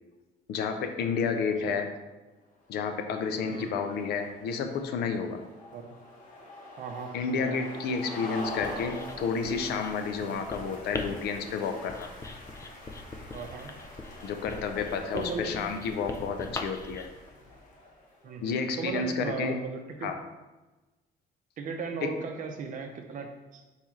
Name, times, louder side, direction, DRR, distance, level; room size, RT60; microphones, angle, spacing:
voice 1, 0.5-1.9 2.7-5.4 7.1-12.1 14.2-17.1 18.3-19.6 20.0-20.2 22.0-22.1, left 5 dB, 75° left, 7 dB, 0.5 m, -31 dB
sound 1, 2.7-18.3, left 2 dB, 50° left, 1.0 m, -45 dB
voice 2, 6.8-7.6 10.2-10.3 13.3-13.7 15.1-15.6 18.2-20.1 21.6-23.6, right 5 dB, 50° right, 4 dB, 0.6 m, -37 dB
Writing, 8.4-17.1, left 3 dB, 15° left, 0.4 m, -42 dB
4.1 x 3.0 x 3.6 m, 1.1 s
cardioid pair, 110°, 17 cm